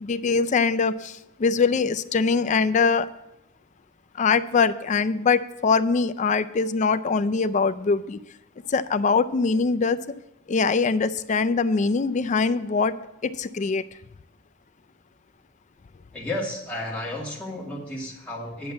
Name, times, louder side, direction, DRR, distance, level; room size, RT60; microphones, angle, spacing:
voice 1, 0.0-1.1 1.4-3.1 4.2-8.2 8.7-10.0 10.5-12.9 13.2-13.8, left 4 dB, 35° left, 13 dB, 0.4 m, -22 dB
voice 2, 16.1-18.7, left 1 dB, 5° left, -5 dB, 2.3 m, -32 dB
10.5 x 6.1 x 7.3 m, 0.86 s
head